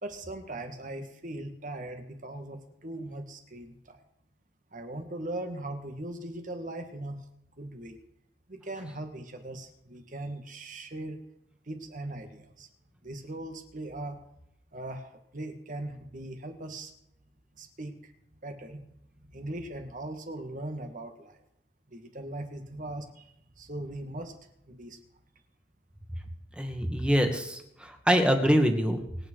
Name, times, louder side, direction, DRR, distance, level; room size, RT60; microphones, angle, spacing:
voice 1, 0.0-4.0 4.7-7.2 7.6-8.0 8.5-11.2 11.7-12.7 13.0-14.2 14.7-16.9 17.6-18.1 18.4-18.9 19.3-21.4 21.9-24.3 24.7-25.0, right 1 dB, 50° right, 6 dB, 2.0 m, -39 dB
voice 2, 26.6-29.0, equal, 5° right, 4 dB, 1.8 m, -25 dB
24.5 x 8.9 x 4.7 m, 0.77 s
head